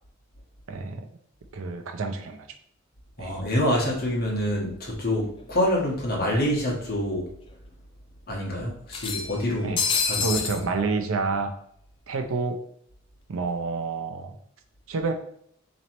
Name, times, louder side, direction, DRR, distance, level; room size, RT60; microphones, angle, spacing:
voice 1, 0.7-1.1 1.5-2.5 3.2-3.4 9.6-9.8 10.2-11.5 12.1-12.6 13.3-14.3 14.9-15.1, right 4 dB, 85° right, 6 dB, 0.5 m, -28 dB
voice 2, 3.2-7.3 8.3-10.7, left 1 dB, 50° left, -3 dB, 1.1 m, -27 dB
sound 1, 5.5-5.6 5.9-6.0 7.0-7.1 7.5-7.6 8.9-10.6, left 5 dB, 25° left, 0.4 m, -27 dB
4.0 x 3.0 x 3.0 m, 0.68 s
head